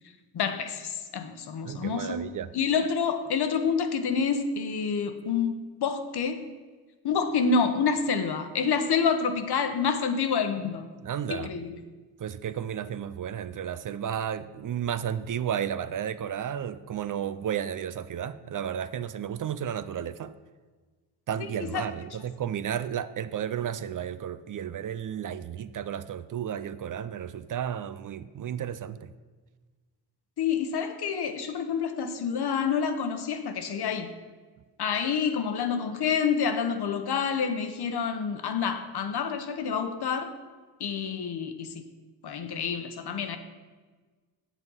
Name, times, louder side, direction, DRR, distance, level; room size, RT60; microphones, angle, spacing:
voice 1, 0.3-2.2 2.5-6.4 7.0-10.8 11.3-11.8 21.7-21.8 30.4-34.1 34.8-40.3 40.8-41.7 42.2-43.4, left 6 dB, 60° left, 8 dB, 1.1 m, -28 dB
voice 2, 1.6-2.5 11.0-11.5 12.2-20.3 21.3-29.1, right 9 dB, 45° right, 14 dB, 0.5 m, -33 dB
7.9 x 7.4 x 5.5 m, 1.4 s
cardioid pair, 70°, 43 cm